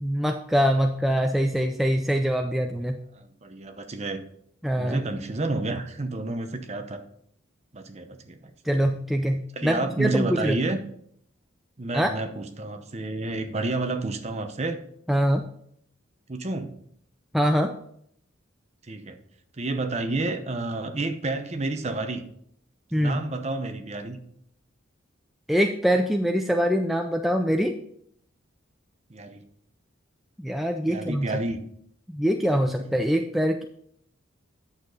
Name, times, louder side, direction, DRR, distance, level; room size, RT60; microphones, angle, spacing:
voice 1, 0.0-3.0 4.6-5.1 8.7-10.6 11.9-12.1 15.1-15.5 17.3-17.7 22.9-23.2 25.5-27.8 30.4-31.3 32.1-33.6, equal, ahead, 4 dB, 0.3 m, -24 dB
voice 2, 3.1-4.2 4.8-7.0 7.7-8.4 9.6-10.8 11.8-14.8 16.3-16.7 18.9-19.2 19.6-22.2 23.0-24.2 29.1-29.4 30.9-31.6, right 2 dB, 35° right, 7 dB, 0.8 m, -30 dB
8.7 x 6.6 x 4.0 m, 0.68 s
head